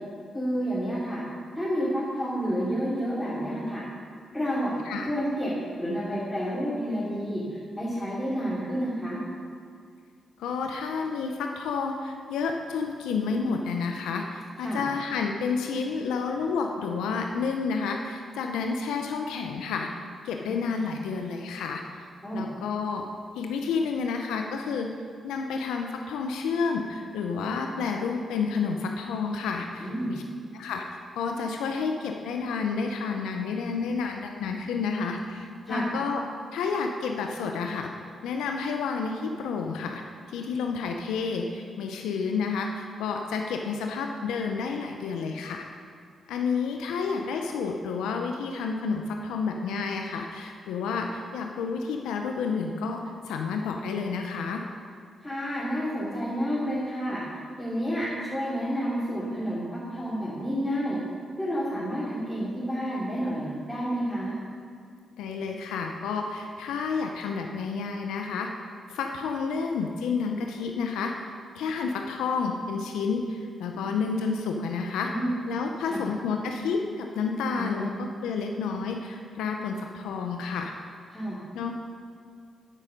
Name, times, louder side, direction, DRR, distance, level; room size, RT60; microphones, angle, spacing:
voice 1, 0.3-1.2 1.5-3.8 4.3-4.7 5.1-5.5 5.8-9.2 14.6-14.8 20.4-20.5 22.2-22.4 29.8-30.1 35.6-35.8 55.2-57.2 57.6-61.0 61.4-64.3 75.0-75.3 75.9-76.0 77.6-78.0 81.1-81.4, equal, 10° left, -10 dB, 3.0 m, -30 dB
voice 2, 10.4-19.9 20.2-21.8 22.3-23.0 23.3-24.9 25.2-30.2 30.5-30.8 31.1-36.2 36.5-37.9 38.2-40.0 40.3-45.7 46.3-54.6 65.2-68.5 68.9-71.1 71.5-75.1 75.5-80.7 81.5-81.7, left 5 dB, 85° left, 3 dB, 0.6 m, -30 dB
13.5 x 5.6 x 5.2 m, 2.2 s
supercardioid pair, 50°, 0 cm